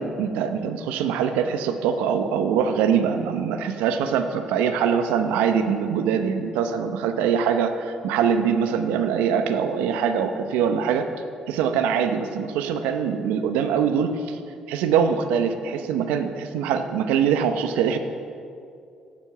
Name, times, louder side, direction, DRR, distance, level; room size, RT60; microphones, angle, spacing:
voice 1, 0.0-11.1 11.5-14.4 14.7-18.0, right 7 dB, 85° right, 9 dB, 0.8 m, -23 dB
17.5 x 7.3 x 5.8 m, 2.4 s
supercardioid pair, 55°, 2 cm